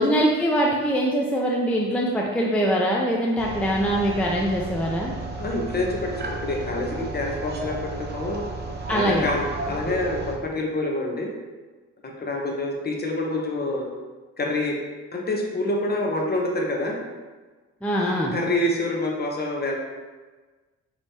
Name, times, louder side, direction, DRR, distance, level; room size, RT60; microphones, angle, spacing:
voice 1, 0.0-5.1 8.9-9.3 17.8-18.4, equal, 5° left, -2 dB, 0.5 m, -23 dB
sound 1, 3.4-10.4, right 3 dB, 35° right, 0.6 m, -33 dB
voice 2, 5.4-8.5 8.9-11.3 12.0-13.8 14.4-14.7 15.1-17.0 18.1-19.8, left 2 dB, 35° left, 0 dB, 0.9 m, -27 dB
5.2 x 3.1 x 2.8 m, 1.3 s
cardioid pair, 90°, 30 cm